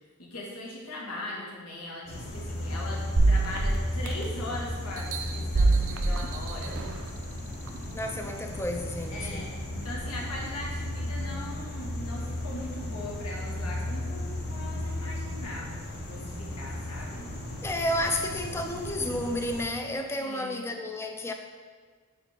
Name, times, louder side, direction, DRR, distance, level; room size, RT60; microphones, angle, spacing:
voice 1, 0.2-6.8 9.1-17.3 20.2-20.6, left 1 dB, 85° left, -3 dB, 1.5 m, -40 dB
sound 1, 2.1-19.6, left 1 dB, 50° left, 0.9 m, -35 dB
sound 2, 3.2-4.5 5.0-7.1 7.7-7.8, right 2 dB, 65° right, 0.6 m, -25 dB
voice 2, 7.9-9.5 17.6-21.3, left 1 dB, 10° left, 4 dB, 0.4 m, -31 dB
5.0 x 4.5 x 4.9 m, 1.5 s
head